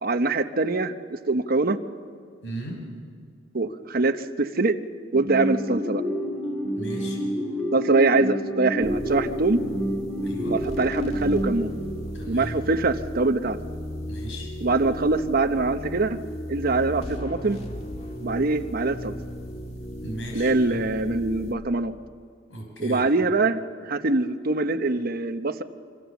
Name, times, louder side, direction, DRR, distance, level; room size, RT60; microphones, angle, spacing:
voice 1, 0.0-1.8 3.5-4.8 5.1-6.0 7.7-9.6 10.5-11.7 12.3-13.6 14.6-16.2 16.5-17.6 18.2-19.1 20.3-21.9 22.8-25.6, right 3 dB, 50° right, 8 dB, 0.9 m, -23 dB
voice 2, 2.4-2.8 6.8-7.2 10.2-10.6 12.1-12.6 14.1-14.5 20.0-20.8 22.5-23.0, right 1 dB, 80° left, 0 dB, 6.0 m, -36 dB
sound 1, 5.1-12.3, equal, 5° left, 4.0 m, -29 dB
sound 2, 8.8-21.6, equal, 35° left, 2.2 m, -36 dB
25.5 x 24.0 x 7.1 m, 2.1 s
head